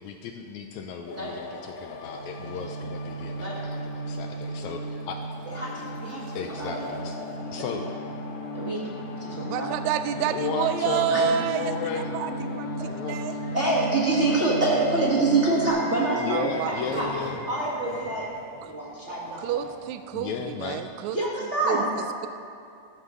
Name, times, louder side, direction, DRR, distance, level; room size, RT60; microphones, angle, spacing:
voice 1, 0.0-5.2 6.3-7.2 7.5-7.9 10.2-12.1 12.8-13.2 16.1-17.4 20.1-20.9, left 6 dB, 80° left, 4 dB, 1.7 m, -34 dB
sound 1, 1.1-15.7, equal, 60° left, 2.0 m, -35 dB
voice 2, 5.5-6.2 6.6-6.9 8.5-8.8 9.2-9.7 11.1-11.2 13.5-17.1 17.5-18.2 18.6-19.7 21.1-21.9, right 2 dB, 50° right, -5 dB, 0.8 m, -26 dB
voice 3, 9.4-12.3 12.6-12.7 13.1-13.4 16.3-17.0 19.4-21.2 21.6-21.8, right 9 dB, 85° right, 10 dB, 1.6 m, -28 dB
Subway metro underground / Alarm, 10.8-20.6, equal, 25° left, 4.3 m, -41 dB
14.5 x 13.5 x 3.7 m, 2.5 s
omnidirectional pair, 3.8 m